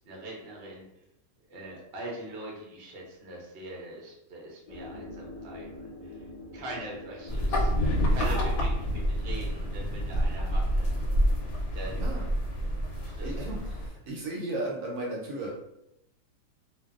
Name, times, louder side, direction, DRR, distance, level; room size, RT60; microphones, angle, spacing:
voice 1, 0.0-0.8 1.5-6.2 6.5-10.9 11.7-12.2 13.0-13.6, right 1 dB, 55° right, -2 dB, 0.7 m, -42 dB
sound 1, 4.7-12.8, left 2 dB, 50° left, 0.4 m, -47 dB
sound 2, 7.3-13.9, equal, 70° left, 0.9 m, -28 dB
voice 2, 8.1-8.5 11.9-12.3 13.2-15.5, right 2 dB, 70° right, -3 dB, 1.1 m, -35 dB
2.5 x 2.2 x 2.3 m, 0.82 s
omnidirectional pair, 1.7 m